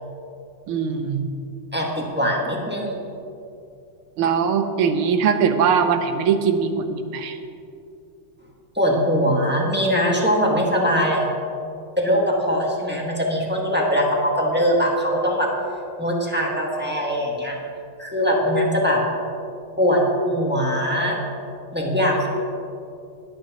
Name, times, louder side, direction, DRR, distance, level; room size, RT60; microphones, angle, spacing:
voice 1, 0.7-1.3 4.2-7.4, right 6 dB, 85° right, 7 dB, 1.8 m, -21 dB
voice 2, 1.7-3.0 8.7-11.3 12.0-15.5 16.0-17.6 18.0-19.0 19.8-21.2 21.7-22.3, equal, 5° right, -3 dB, 1.5 m, -21 dB
18.0 x 11.5 x 3.0 m, 2.6 s
omnidirectional pair, 2.3 m